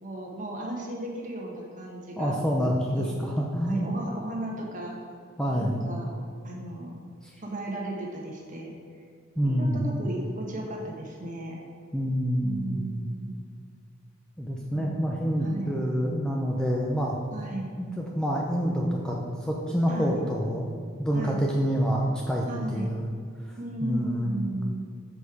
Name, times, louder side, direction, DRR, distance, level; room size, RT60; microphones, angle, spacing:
voice 1, 0.0-3.1 3.7-5.0 5.6-6.1 6.4-6.9 7.4-8.7 9.4-11.6 12.4-13.3 14.7-15.0 15.4-15.8 17.3-17.7 19.9-20.3 21.1-21.4 22.5-22.9 23.6-24.8, right 1 dB, 40° right, -1 dB, 1.2 m, -35 dB
voice 2, 2.2-3.9 5.4-5.9 7.2-7.3 9.4-9.8 11.9-12.8 14.4-17.2 17.8-20.7 21.0-22.5 22.7-23.1 23.8-24.5, equal, 5° left, -2 dB, 0.5 m, -27 dB
6.0 x 5.3 x 4.8 m, 2.2 s
head